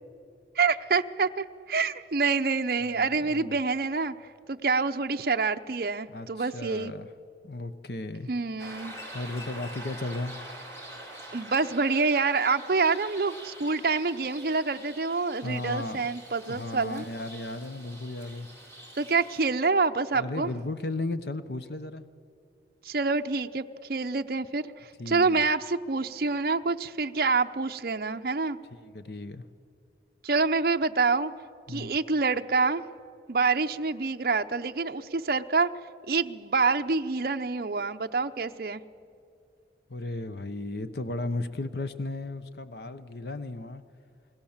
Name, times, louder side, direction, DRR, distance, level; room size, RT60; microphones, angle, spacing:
voice 1, 0.6-4.1 4.5-6.9 8.3-8.9 11.3-17.1 19.0-20.5 22.8-28.6 30.2-31.3 31.7-32.8 33.3-35.7 36.1-38.8, right 4 dB, 55° right, 6 dB, 0.6 m, -27 dB
voice 2, 2.9-3.6 6.1-7.1 7.4-8.3 9.1-10.3 15.4-16.0 16.5-18.5 20.1-22.0 25.0-25.4 28.9-29.4 31.7-32.0 39.9-43.8, left 2 dB, 65° left, 11 dB, 0.9 m, -35 dB
sound 1, 8.6-19.5, right 1 dB, 15° left, 3.8 m, -45 dB
28.5 x 20.5 x 7.3 m, 2.4 s
head